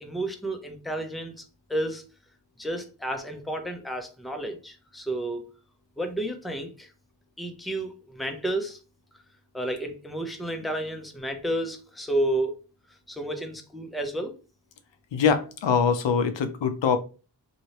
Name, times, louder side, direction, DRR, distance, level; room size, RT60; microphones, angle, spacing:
voice 1, 0.0-1.4 1.7-2.0 2.6-5.4 6.0-6.9 7.4-8.8 9.5-12.6 12.9-14.4, right 1 dB, ahead, 4 dB, 0.5 m, -31 dB
voice 2, 15.1-17.0, left 6 dB, 85° left, 8 dB, 0.6 m, -23 dB
3.0 x 2.7 x 2.9 m, 0.34 s
wide cardioid pair, 85°, 43 cm